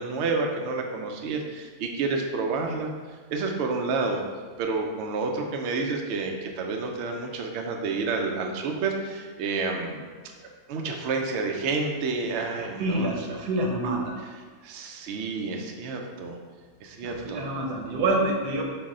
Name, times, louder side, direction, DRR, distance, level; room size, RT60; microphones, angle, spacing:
voice 1, 0.0-2.9 3.3-4.2 4.6-10.1 10.4-13.1 14.6-16.4 16.8-17.4, right 4 dB, 70° right, 2 dB, 0.6 m, -29 dB
voice 2, 12.6-14.2 17.0-18.6, right 2 dB, 90° right, 1 dB, 1.3 m, -27 dB
5.9 x 2.1 x 3.7 m, 1.5 s
omnidirectional pair, 1.7 m